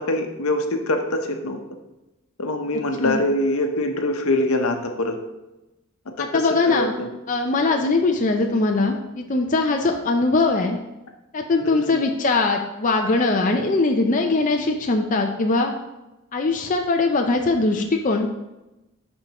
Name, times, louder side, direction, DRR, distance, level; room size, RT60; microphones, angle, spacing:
voice 1, 0.0-1.6 2.4-5.2 6.2-7.1 7.7-8.0 11.6-12.0, left 1 dB, 75° left, 5 dB, 0.9 m, -24 dB
voice 2, 6.2-6.9 7.3-10.8 11.3-15.7 16.3-18.3, left 3 dB, 35° left, 3 dB, 0.5 m, -21 dB
11.5 x 4.5 x 3.0 m, 0.99 s
head